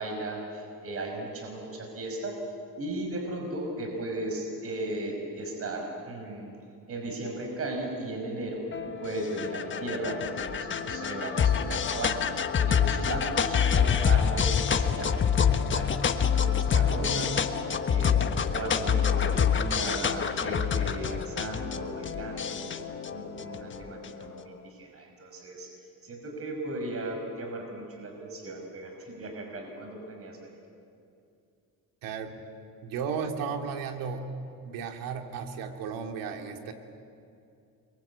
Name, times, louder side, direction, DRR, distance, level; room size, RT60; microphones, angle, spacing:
voice 1, 0.0-2.4 2.8-6.5 6.9-8.7 9.0-15.9 16.3-17.5 17.8-18.2 18.5-22.7 23.1-25.7 26.0-30.6, right 2 dB, 45° right, 2 dB, 5.7 m, -36 dB
sound 1, 8.7-24.2, left 7 dB, 35° left, 1.5 m, -27 dB
voice 2, 32.0-32.4 32.8-34.3 34.6-36.7, right 6 dB, 80° right, 4 dB, 2.9 m, -34 dB
29.0 x 23.5 x 8.4 m, 2.5 s
cardioid pair, 110°, 33 cm